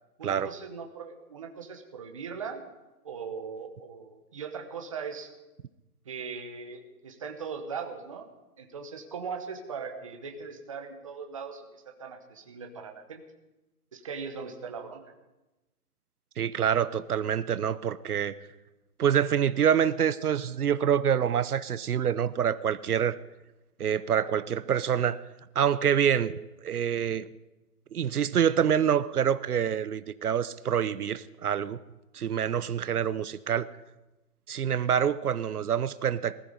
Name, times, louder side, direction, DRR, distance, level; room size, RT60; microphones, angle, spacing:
voice 1, 0.2-2.6 3.0-5.3 6.0-8.3 8.6-13.2 13.9-15.0, right 5 dB, 20° right, 4 dB, 1.1 m, -39 dB
voice 2, 16.4-18.4 19.0-23.2 23.8-25.2 25.5-27.3 27.9-31.8 32.1-33.7 34.5-36.4, right 8 dB, 70° right, 15 dB, 0.8 m, -26 dB
20.0 x 13.5 x 5.3 m, 1.0 s
hypercardioid pair, 175°, 47 cm